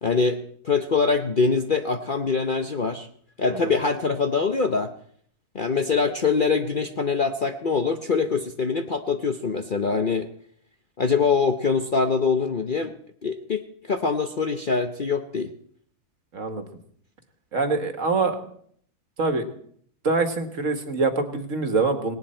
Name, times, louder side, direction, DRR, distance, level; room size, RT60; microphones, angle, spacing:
voice 1, 0.0-3.1 3.4-4.9 5.5-10.3 11.0-12.9 13.2-13.6 13.9-15.5, left 4 dB, 45° left, 7 dB, 0.7 m, -24 dB
voice 2, 16.3-16.6 17.5-18.4 19.2-19.4 20.0-22.2, right 3 dB, 55° right, 7 dB, 1.8 m, -24 dB
18.5 x 18.0 x 4.4 m, 0.62 s
omnidirectional pair, 1.6 m